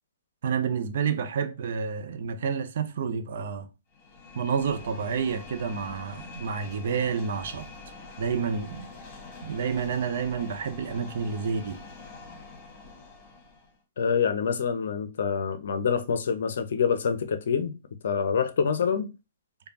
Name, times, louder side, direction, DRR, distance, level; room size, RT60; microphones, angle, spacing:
voice 1, 0.4-3.7 4.3-7.7 8.2-8.9 9.4-11.8, right 6 dB, 50° right, 0.6 m, -29 dB
sound 1, 3.9-13.8, left 3 dB, 25° left, 1.4 m, -45 dB
voice 2, 14.0-17.7 18.0-19.1, left 6 dB, 55° left, 0.6 m, -26 dB
4.9 x 2.3 x 2.7 m
figure-of-eight pair, 120°, 0 cm